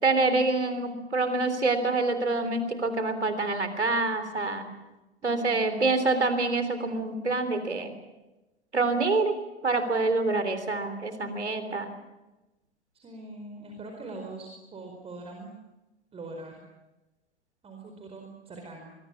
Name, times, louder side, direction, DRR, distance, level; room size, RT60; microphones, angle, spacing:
voice 1, 0.0-4.7 5.2-7.9 8.7-9.3 9.6-11.9, right 3 dB, 80° right, 9 dB, 3.6 m, -26 dB
voice 2, 5.2-6.0 12.9-15.5 16.1-16.6 17.6-19.0, right 2 dB, 15° right, 2 dB, 4.7 m, -42 dB
26.5 x 22.5 x 7.2 m, 1.0 s
figure-of-eight pair, 100°, 34 cm